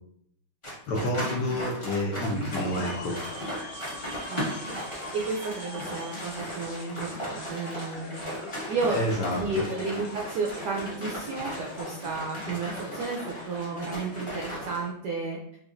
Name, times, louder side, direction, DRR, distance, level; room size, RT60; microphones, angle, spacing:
sound 1, 0.6-14.8, equal, 25° left, 0.6 m, -37 dB
voice 1, 0.9-3.1 8.9-9.4, left 1 dB, 70° left, -3 dB, 1.1 m, -28 dB
sound 2, 2.2-14.9, left 1 dB, 40° left, 1.0 m, -43 dB
voice 2, 4.3-4.8 5.1-8.4 8.7-9.0 9.3-15.4, right 3 dB, 80° right, -1 dB, 0.9 m, -32 dB
4.8 x 2.3 x 2.5 m, 0.70 s
omnidirectional pair, 2.3 m